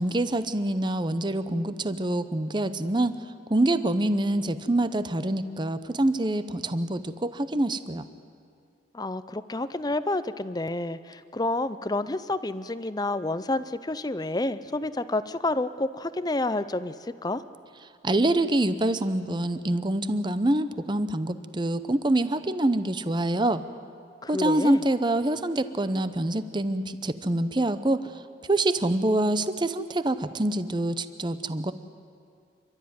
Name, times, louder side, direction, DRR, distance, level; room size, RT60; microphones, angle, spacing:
voice 1, 0.0-3.1 3.5-8.0 18.0-23.6 24.3-28.1 28.4-31.7, right 1 dB, 25° right, 12 dB, 0.7 m, -26 dB
voice 2, 8.9-17.4 24.2-24.8, left 2 dB, 20° left, 14 dB, 0.6 m, -29 dB
28.5 x 12.5 x 9.5 m, 2.3 s
head